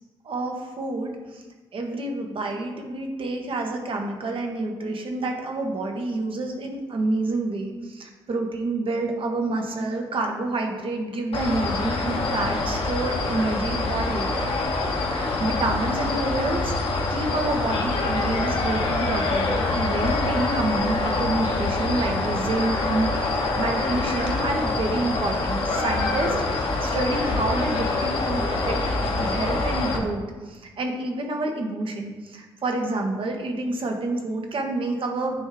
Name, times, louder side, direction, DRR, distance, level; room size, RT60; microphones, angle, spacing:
voice 1, 0.2-1.4 1.7-14.4 15.0-16.7 17.1-35.5, right 2 dB, 50° right, 2 dB, 1.2 m, -28 dB
sound 1, 11.3-30.0, left 3 dB, 55° left, 1.2 m, -25 dB
9.1 x 3.2 x 3.7 m, 1.3 s
hypercardioid pair, 45°, 12 cm